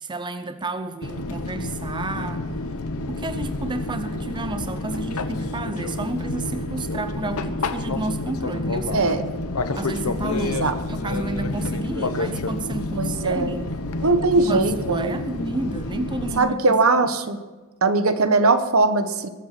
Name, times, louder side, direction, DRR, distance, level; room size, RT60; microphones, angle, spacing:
voice 1, 0.0-2.5 3.1-9.4 9.7-13.7 14.4-16.8 17.2-17.4, right 2 dB, 20° right, 10 dB, 0.5 m, -31 dB
Fixed-wing aircraft airplane, 1.0-16.4, left 2 dB, 85° left, 1.0 m, -29 dB
voice 2, 8.9-9.2 10.6-10.8 13.0-13.6 14.0-15.2 16.4-17.4 17.8-19.3, right 3 dB, 65° right, 10 dB, 1.1 m, -20 dB
22.0 x 7.8 x 5.9 m, 1.3 s
head